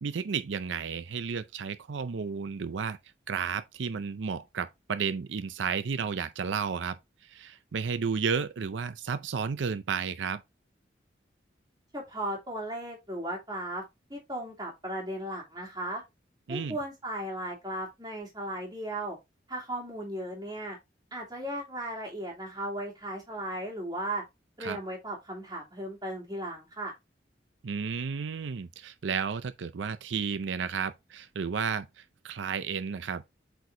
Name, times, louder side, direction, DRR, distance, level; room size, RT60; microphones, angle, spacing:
voice 1, 0.0-3.0 3.3-10.4 16.5-16.8 24.6-24.8 27.6-33.2, right 6 dB, 90° right, 0.5 m, -32 dB
voice 2, 11.9-13.8 14.1-16.0 16.5-19.2 19.5-20.8 21.1-24.2 24.6-26.9, right 1 dB, 20° right, 2.7 m, -36 dB
7.9 x 4.6 x 2.7 m
head